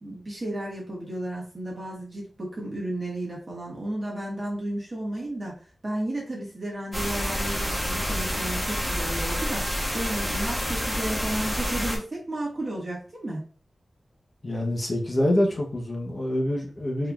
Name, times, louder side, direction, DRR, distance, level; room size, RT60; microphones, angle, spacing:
voice 1, 0.0-13.4, right 1 dB, 35° right, -4 dB, 1.6 m, -33 dB
sound 1, 6.9-12.0, equal, 10° left, 1.2 m, -28 dB
voice 2, 14.4-17.1, left 1 dB, 35° left, 0 dB, 0.9 m, -26 dB
3.9 x 3.4 x 2.4 m, 0.40 s
wide cardioid pair, 90°, 0 cm